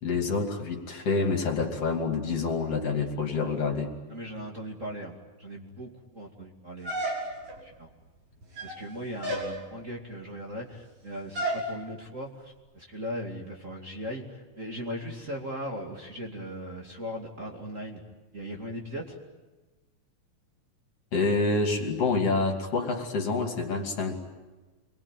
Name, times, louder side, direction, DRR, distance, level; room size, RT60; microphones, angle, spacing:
voice 1, 0.0-3.9 21.1-24.2, left 3 dB, 55° left, 3 dB, 3.7 m, -27 dB
voice 2, 4.1-6.9 7.6-7.9 8.6-18.0 18.3-19.2, equal, 25° right, 0 dB, 2.6 m, -38 dB
sound 1, 6.8-7.6 8.4-8.8 9.2-9.5 11.4-11.7, right 1 dB, 65° right, 7.5 m, -31 dB
29.0 x 22.5 x 9.1 m, 1.2 s
omnidirectional pair, 3.4 m